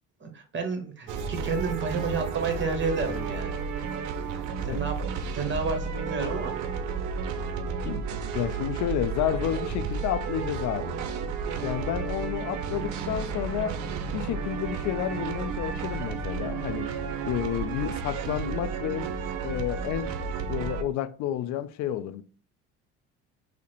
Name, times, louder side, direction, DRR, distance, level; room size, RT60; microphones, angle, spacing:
voice 1, 0.2-3.6 4.3-4.9 5.2-6.5, right 4 dB, 30° right, 1.2 m, -31 dB
sound 1, 1.1-20.8, right 5 dB, 55° right, 0.7 m, -32 dB
voice 2, 8.3-11.0 11.6-13.8 14.1-17.0 17.2-19.1 19.4-20.2 20.5-22.2, left 11 dB, 50° left, 0.5 m, -30 dB
4.6 x 2.2 x 3.0 m
hypercardioid pair, 60°, 37 cm